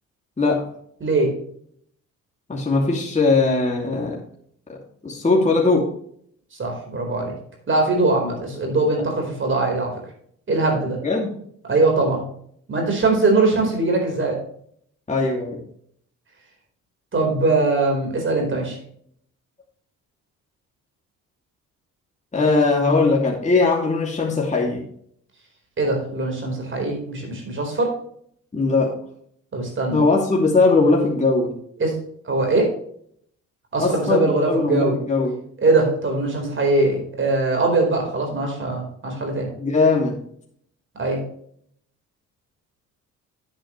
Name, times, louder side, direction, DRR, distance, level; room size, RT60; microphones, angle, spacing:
voice 1, 1.0-1.3 6.5-7.3 7.7-9.9 10.5-11.0 11.7-12.2 12.7-14.4 17.1-18.8 25.8-27.9 29.5-30.0 31.8-31.9 32.2-32.7 33.7-35.0 35.6-39.5 41.0-41.2, right 2 dB, 40° right, 2 dB, 4.5 m, -21 dB
voice 2, 2.5-4.2 5.0-5.9 11.0-11.3 15.1-15.6 22.3-24.8 28.5-28.9 29.9-31.5 33.8-35.3 39.6-40.2, left 3 dB, 25° left, -2 dB, 2.7 m, -19 dB
9.8 x 9.0 x 3.2 m, 0.64 s
cardioid pair, 90°, 30 cm